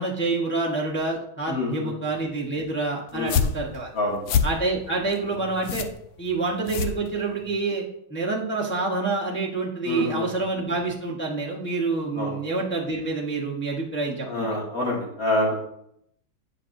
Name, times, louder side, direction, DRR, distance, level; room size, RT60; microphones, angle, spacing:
voice 1, 0.0-3.9 4.4-5.9 6.2-7.8 8.1-14.6, right 3 dB, 15° left, -4 dB, 0.4 m, -27 dB
voice 2, 1.5-1.9 3.1-3.4 3.9-4.2 9.8-10.3 12.1-12.3 14.3-15.5, left 2 dB, 45° left, -4 dB, 2.5 m, -26 dB
sound 1, 3.1-7.6, left 6 dB, 75° left, 0.9 m, -28 dB
9.1 x 5.1 x 2.6 m, 0.73 s
omnidirectional pair, 2.2 m